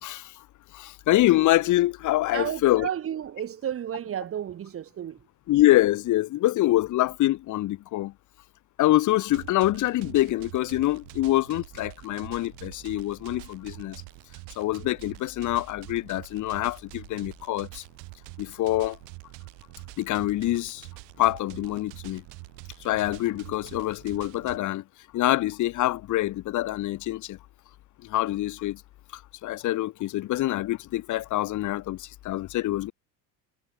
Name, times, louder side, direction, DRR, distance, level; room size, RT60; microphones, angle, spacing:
voice 1, 0.0-0.4 0.7-2.9 5.5-8.1 8.8-14.0 14.5-17.8 18.4-19.0 20.0-20.9 21.2-22.2 22.8-24.8 25.1-27.4 28.0-28.8 29.1-32.9, left 15 dB, 45° left, 1.1 m, -25 dB
voice 2, 2.3-5.2, right 10 dB, 30° right, 2.0 m, -32 dB
sound 1, 9.3-24.6, right 32 dB, 85° right, 1.7 m, -45 dB
cardioid pair, 160°, 42 cm